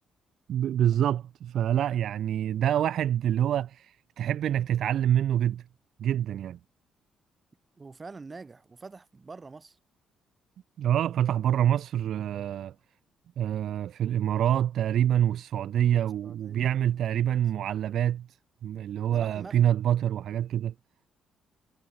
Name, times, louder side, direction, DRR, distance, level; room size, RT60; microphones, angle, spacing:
voice 1, 0.5-5.6 6.0-6.6 10.8-12.7 13.4-18.3 18.6-20.7, right 10 dB, 70° right, 0.5 m, -26 dB
voice 2, 7.8-9.8 16.2-17.4 19.1-19.7, right 4 dB, 30° right, 4.2 m, -46 dB
cardioid pair, 90°, 0 cm